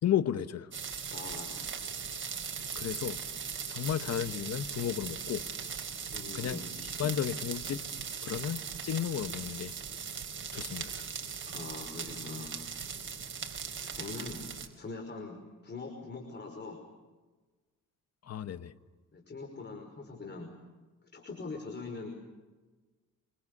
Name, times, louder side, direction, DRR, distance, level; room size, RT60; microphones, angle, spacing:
voice 1, 0.0-0.7 2.7-3.2 3.7-5.4 6.3-6.6 7.0-7.9 8.2-9.7 10.5-11.0 18.3-18.7, left 10 dB, 55° left, 12 dB, 1.3 m, -33 dB
sound 1, 0.7-14.7, right 6 dB, 40° right, 4.7 m, -39 dB
voice 2, 1.1-2.0 6.1-6.6 11.5-12.6 13.8-16.8 19.1-20.5 21.1-22.1, left 3 dB, 35° left, 4 dB, 5.4 m, -43 dB
27.0 x 26.0 x 6.8 m, 1.3 s
cardioid pair, 90°, 30 cm